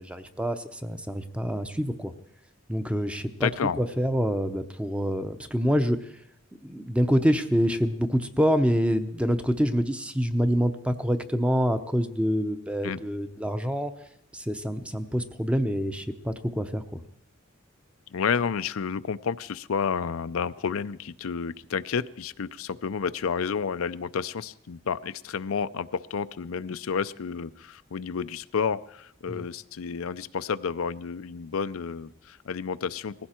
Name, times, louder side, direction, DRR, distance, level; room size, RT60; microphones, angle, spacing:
voice 1, 0.0-2.1 2.7-3.5 3.8-6.0 6.6-13.9 14.3-16.8 29.3-29.4, equal, 5° right, 9 dB, 0.7 m, -26 dB
voice 2, 3.4-3.8 12.8-13.0 18.1-33.1, left 6 dB, 85° left, 13 dB, 0.5 m, -30 dB
19.5 x 15.5 x 4.4 m, 0.74 s
head